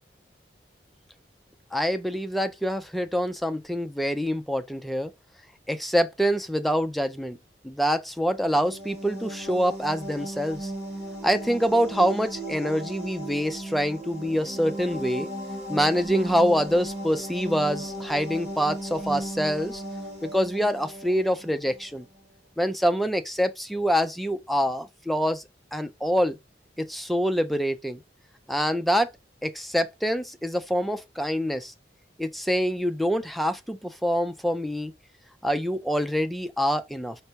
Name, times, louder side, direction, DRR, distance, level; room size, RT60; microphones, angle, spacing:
voice 1, 1.7-5.1 5.7-7.4 7.6-10.7 11.2-15.3 15.7-19.8 20.2-22.1 22.6-25.4 25.7-26.4 26.8-28.0 28.5-29.1 29.4-31.7 32.2-34.9 35.4-37.2, equal, ahead, 0.4 m, -25 dB
sound 1, 8.3-21.9, right 1 dB, 40° right, 2.8 m, -36 dB
5.3 x 3.3 x 2.8 m
head